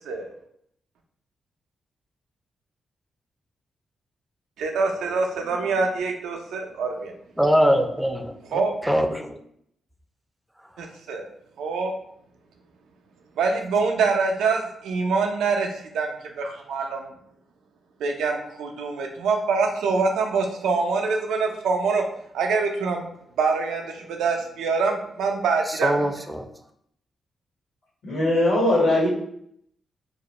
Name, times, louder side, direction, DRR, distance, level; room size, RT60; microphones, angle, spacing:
voice 1, 4.6-7.1 8.4-8.7 10.8-11.3 11.6-11.9 13.4-17.1 18.0-22.0 22.3-23.0 23.4-26.0, right 4 dB, 90° right, 3 dB, 0.4 m, -25 dB
voice 2, 7.4-9.4 25.8-26.4, equal, 5° right, 5 dB, 0.4 m, -22 dB
voice 3, 28.0-29.1, left 1 dB, 75° left, -7 dB, 1.1 m, -20 dB
2.4 x 2.1 x 2.9 m, 0.70 s
cardioid pair, 60°, 0 cm